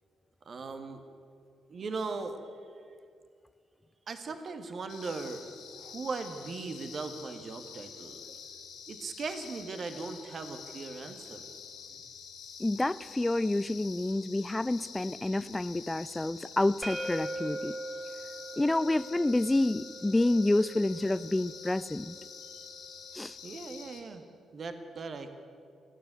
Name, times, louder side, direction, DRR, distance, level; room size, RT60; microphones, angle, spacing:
voice 1, 0.5-1.0 1.7-2.4 4.1-5.5 5.7-8.2 8.9-11.5 23.4-24.2 24.5-25.3, right 4 dB, 50° right, 8 dB, 1.8 m, -38 dB
sound 1, 4.9-24.0, left 7 dB, 70° left, 3.1 m, -47 dB
voice 2, 12.6-17.8 18.6-22.2 23.1-23.4, left 2 dB, 15° left, 18 dB, 0.6 m, -28 dB
sound 2, 16.8-22.6, right 1 dB, 5° right, 2.0 m, -41 dB
29.0 x 10.0 x 9.4 m, 2.2 s
hypercardioid pair, 40°, 0 cm